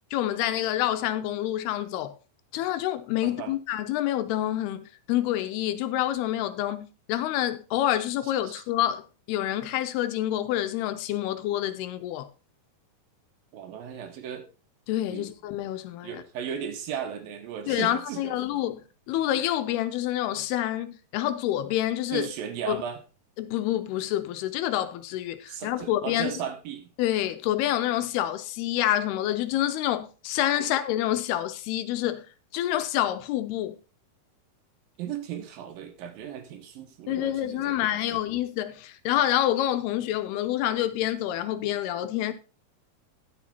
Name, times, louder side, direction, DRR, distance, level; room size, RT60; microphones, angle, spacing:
voice 1, 0.1-2.2 2.5-12.3 14.9-16.2 17.7-22.3 22.7-22.8 23.4-26.3 27.0-32.3 32.5-33.8 37.1-42.3, left 13 dB, 85° left, 2.7 m, -27 dB
voice 2, 13.5-14.5 15.1-15.2 16.0-18.6 19.2-19.3 22.1-23.0 25.5-26.9 30.6-30.7 35.0-38.2, right 8 dB, 70° right, 2.7 m, -36 dB
11.0 x 7.3 x 4.2 m
omnidirectional pair, 4.7 m